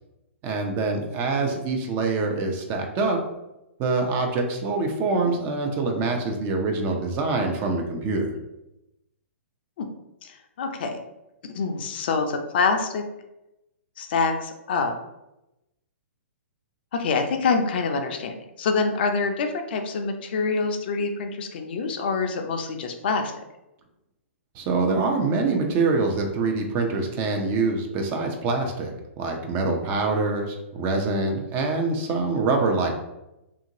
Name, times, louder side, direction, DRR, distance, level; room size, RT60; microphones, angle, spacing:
voice 1, 0.4-3.2 3.8-8.3 24.6-32.9, right 3 dB, 30° right, 2 dB, 0.5 m, -25 dB
voice 2, 10.2-11.0 11.5-13.0 14.0-14.9 16.9-23.4, left 4 dB, 50° left, 5 dB, 0.4 m, -26 dB
2.8 x 2.5 x 2.7 m, 0.91 s
figure-of-eight pair, 115°, 7 cm